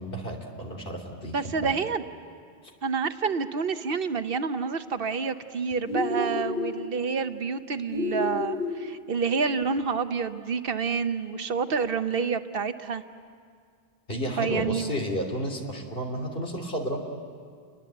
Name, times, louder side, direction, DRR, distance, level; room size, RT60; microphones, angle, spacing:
voice 1, 0.0-1.7 14.1-17.0, equal, 60° left, 2 dB, 3.1 m, -32 dB
voice 2, 1.3-2.0 2.8-13.0 14.4-15.0, right 5 dB, 60° right, 10 dB, 1.0 m, -28 dB
sound 1, 5.8-6.8 7.9-8.8, left 2 dB, 75° left, 3.6 m, -29 dB
29.5 x 21.5 x 8.1 m, 2.1 s
omnidirectional pair, 1.1 m